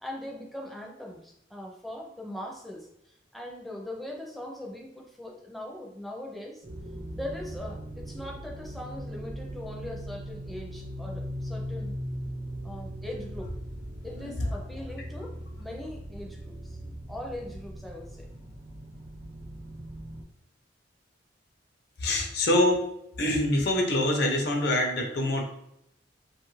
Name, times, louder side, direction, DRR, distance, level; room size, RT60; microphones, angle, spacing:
voice 1, 0.0-6.6 7.1-12.0 12.6-13.5 14.0-16.8 17.1-18.3, left 1 dB, ahead, -1 dB, 0.4 m, -40 dB
sound 1, 6.6-20.2, equal, 65° right, 0.9 m, -39 dB
voice 2, 14.1-14.5 22.0-22.9 23.2-25.4, left 1 dB, 60° left, 2 dB, 0.6 m, -25 dB
2.6 x 2.4 x 3.1 m, 0.79 s
head